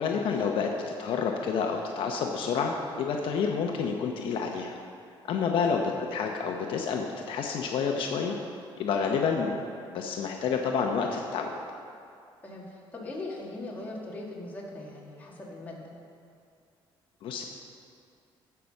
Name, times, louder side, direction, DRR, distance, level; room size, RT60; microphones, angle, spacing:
voice 1, 0.0-4.7 5.3-8.4 8.8-9.5 9.9-11.5 17.2-17.4, left 5 dB, 65° left, 2 dB, 0.9 m, -29 dB
voice 2, 5.3-5.6 12.4-15.9, left 2 dB, 20° left, -4 dB, 1.9 m, -40 dB
15.5 x 5.8 x 6.5 m, 2.4 s
cardioid pair, 170°, 10 cm